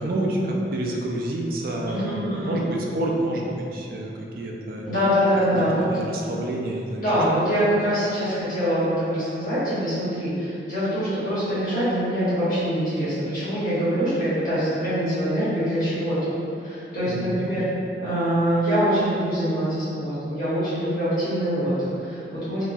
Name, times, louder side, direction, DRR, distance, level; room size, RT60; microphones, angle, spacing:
voice 1, 0.0-4.9 5.5-7.0 17.1-17.4, right 1 dB, 50° right, -1 dB, 0.3 m, -28 dB
voice 2, 1.9-2.6 4.9-5.9 7.0-16.3 16.6-17.6 18.0-22.6, equal, 50° left, -12 dB, 1.2 m, -24 dB
3.0 x 2.3 x 2.5 m, 2.6 s
head